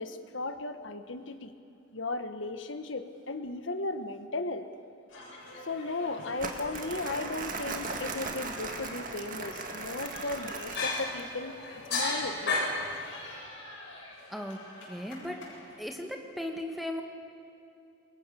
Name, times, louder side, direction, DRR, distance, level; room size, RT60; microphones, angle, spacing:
voice 1, 0.0-1.5 1.9-4.7 5.6-11.6 11.9-12.8, left 2 dB, 75° left, 9 dB, 1.3 m, -36 dB
sound 1, 5.1-15.8, left 2 dB, 90° left, 7.4 m, -47 dB
sound 2, 6.2-6.3 7.2-7.3 8.3-8.4 9.0-9.1 9.5-9.6 10.8-11.3 11.6-13.0, left 3 dB, 55° left, 5.7 m, -31 dB
Crumpling crinkling, 6.4-11.3, right 4 dB, 40° right, 2.0 m, -38 dB
voice 2, 14.9-15.4 15.8-17.0, left 1 dB, ahead, 3 dB, 1.9 m, -36 dB
28.5 x 22.5 x 7.0 m, 2.7 s
head